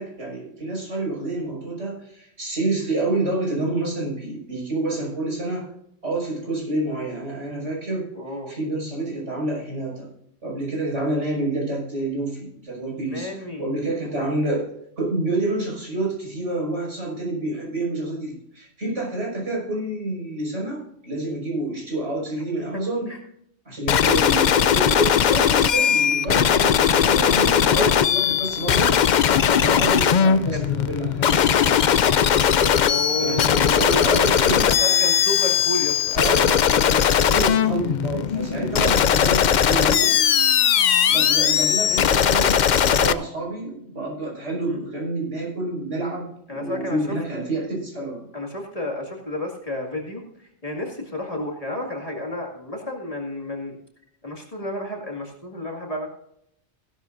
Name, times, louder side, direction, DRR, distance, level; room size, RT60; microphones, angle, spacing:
voice 1, 0.0-5.7 6.0-8.1 8.5-10.1 10.4-13.3 13.6-14.7 15.0-23.1 23.7-29.0 29.5-31.8 32.9-34.7 36.1-40.1 41.1-48.2, right 2 dB, 80° right, -3 dB, 5.8 m, -28 dB
voice 2, 8.1-8.5 13.1-13.7 23.1-23.2 27.4-27.9 28.3-28.4 29.5-29.7 30.5-30.6 32.6-36.0 46.5-47.2 48.3-53.8 54.2-56.1, left 1 dB, 30° left, 0 dB, 2.2 m, -31 dB
sound 1, 23.9-43.1, left 8 dB, 60° left, 0.5 m, -19 dB
16.5 x 11.5 x 2.6 m, 0.73 s
omnidirectional pair, 1.2 m